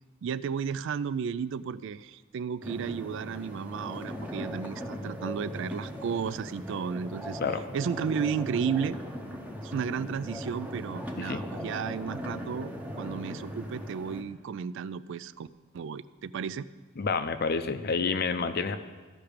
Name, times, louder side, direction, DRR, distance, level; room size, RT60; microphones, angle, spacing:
voice 1, 0.2-7.4 7.7-9.0 9.6-12.7 13.0-15.5 15.7-16.7, right 6 dB, 60° right, 16 dB, 0.3 m, -33 dB
sound 1, 2.6-14.2, equal, 5° right, 0.8 m, -39 dB
voice 2, 17.0-18.8, left 4 dB, 45° left, 10 dB, 0.5 m, -29 dB
15.0 x 5.8 x 5.0 m, 1.3 s
head